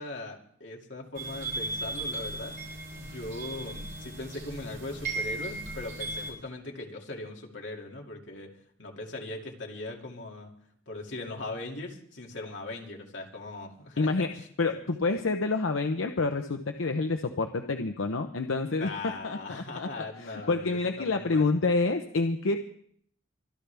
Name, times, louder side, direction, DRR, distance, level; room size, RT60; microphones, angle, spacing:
voice 1, 0.0-2.6 3.0-8.5 8.8-10.5 10.9-14.5 18.8-21.5, left 2 dB, 65° left, 0 dB, 2.4 m, -40 dB
sound 1, 1.1-6.3, right 2 dB, 45° right, 7.4 m, -36 dB
voice 2, 14.0-14.3 14.6-18.9 19.2-22.6, left 3 dB, 85° left, 6 dB, 0.8 m, -28 dB
24.5 x 11.5 x 3.4 m, 0.63 s
head